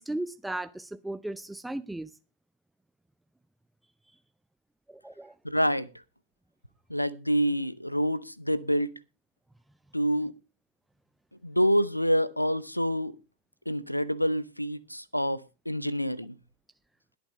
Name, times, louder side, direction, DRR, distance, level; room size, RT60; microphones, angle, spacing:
voice 1, 0.0-2.1 4.9-5.3, right 1 dB, 5° right, 0.5 m, -36 dB
voice 2, 5.4-5.9 6.9-9.0 9.9-10.3 11.4-13.1 13.7-16.3, equal, 90° left, 0.7 m, -27 dB
21.0 x 8.8 x 3.3 m
figure-of-eight pair, 90°, 0 cm